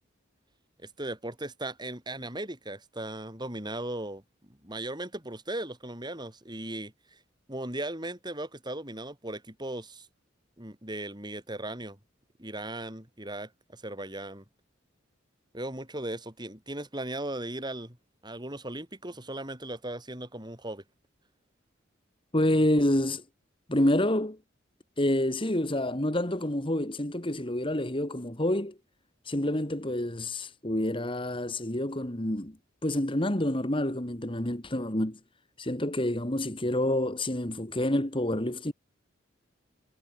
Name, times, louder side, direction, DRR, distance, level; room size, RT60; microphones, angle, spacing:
voice 1, 0.8-4.2 4.5-7.2 7.5-10.1 10.6-12.0 12.4-14.4 15.5-18.0 18.2-20.8, right 1 dB, 20° right, 7.7 m, -37 dB
voice 2, 22.3-23.2 23.7-24.4 25.0-28.8 29.2-32.6 32.8-35.2 35.6-38.7, left 1 dB, 25° left, 2.4 m, -28 dB
head